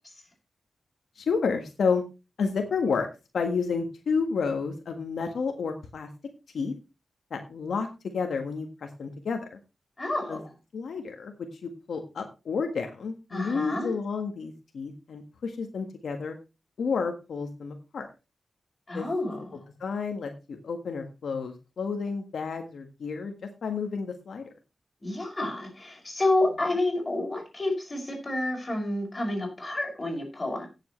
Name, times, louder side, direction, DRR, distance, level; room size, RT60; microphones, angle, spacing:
voice 1, 1.2-2.0 2.4-3.1 3.3-6.1 6.5-6.7 7.3-7.9 8.1-9.6 10.3-10.4 10.7-11.3 11.6-16.4 16.8-18.1 18.9-19.1 19.8-23.3 23.6-24.5, left 5 dB, 85° left, 4 dB, 1.6 m, -30 dB
voice 2, 10.0-10.5 13.3-13.9 18.9-19.6 25.0-30.7, left 2 dB, 25° left, 0 dB, 5.7 m, -29 dB
17.0 x 7.5 x 3.2 m, 0.27 s
wide cardioid pair, 125°, 0 cm